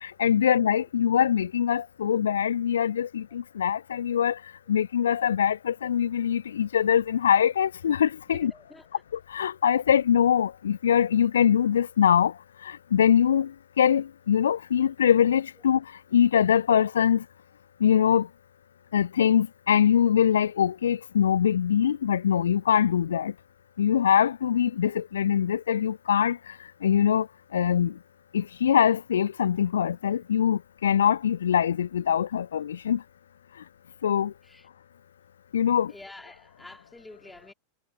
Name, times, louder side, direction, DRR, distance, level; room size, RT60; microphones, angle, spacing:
voice 1, 0.0-4.4 4.7-8.5 9.1-12.3 12.6-15.8 16.1-17.2 17.8-18.3 18.9-23.3 23.8-26.4 26.8-27.3 27.5-27.9 28.3-33.0 34.0-34.3 35.5-35.9, left 9 dB, 65° left, 0.7 m, -23 dB
voice 2, 8.5-9.0 34.4-34.7 35.9-37.5, left 2 dB, 5° left, 3.1 m, -48 dB
figure-of-eight pair, 90°, 0 cm